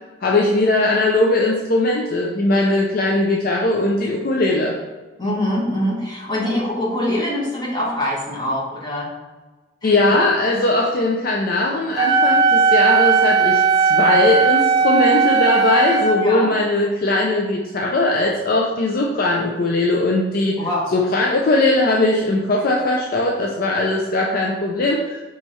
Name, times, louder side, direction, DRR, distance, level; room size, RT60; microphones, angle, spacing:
voice 1, 0.2-4.8 9.8-25.2, left 2 dB, 50° left, -1 dB, 0.4 m, -19 dB
voice 2, 5.2-9.1 9.8-10.1 16.2-16.5 20.6-20.9, left 1 dB, 25° left, -5 dB, 1.3 m, -24 dB
Wind instrument woodwind instrument, 12.0-16.2, right 5 dB, 20° right, 0.4 m, -16 dB
5.3 x 3.1 x 3.0 m, 1.3 s
head